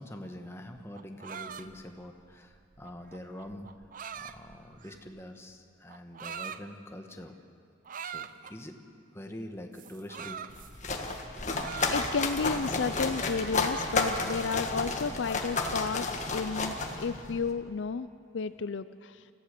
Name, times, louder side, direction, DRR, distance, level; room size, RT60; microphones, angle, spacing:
voice 1, 0.0-3.7 4.1-7.4 8.0-8.8 9.1-10.5, left 1 dB, 15° left, 4 dB, 1.2 m, -44 dB
sound 1, 0.8-5.2 5.9-6.6 7.9-8.6 9.7-11.2 11.5-12.4 12.8-14.5, right 7 dB, 45° right, 0.5 m, -43 dB
sound 2, 10.5-17.5, left 3 dB, 40° left, 1.6 m, -32 dB
voice 2, 11.9-18.1 18.3-19.2, left 5 dB, 65° left, 13 dB, 0.5 m, -32 dB
25.5 x 15.0 x 6.7 m, 2.4 s
head